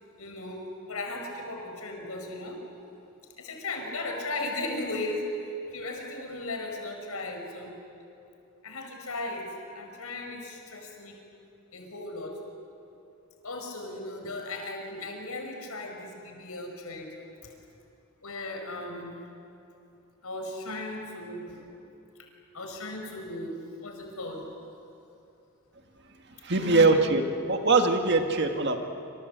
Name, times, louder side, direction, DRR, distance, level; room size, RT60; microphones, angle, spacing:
voice 1, 0.2-2.6 3.4-7.8 8.6-11.2 11.7-12.4 13.4-17.2 18.2-19.2 20.2-21.8 22.5-24.4 26.5-27.1 27.4-27.6, left 2 dB, 85° left, 3 dB, 5.4 m, -36 dB
voice 2, 26.4-27.2 27.5-28.8, right 3 dB, 50° right, 5 dB, 1.9 m, -22 dB
27.0 x 26.5 x 8.1 m, 2.7 s
head